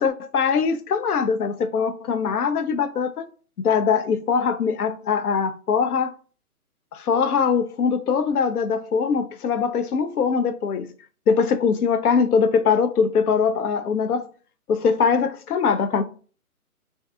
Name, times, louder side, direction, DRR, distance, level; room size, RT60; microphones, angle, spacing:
voice 1, 0.0-3.3 3.6-6.1 6.9-10.9 11.3-14.3 14.7-16.0, left 6 dB, 80° left, 0.6 m, -22 dB
2.6 x 2.2 x 3.5 m
hypercardioid pair, 170°, 45 cm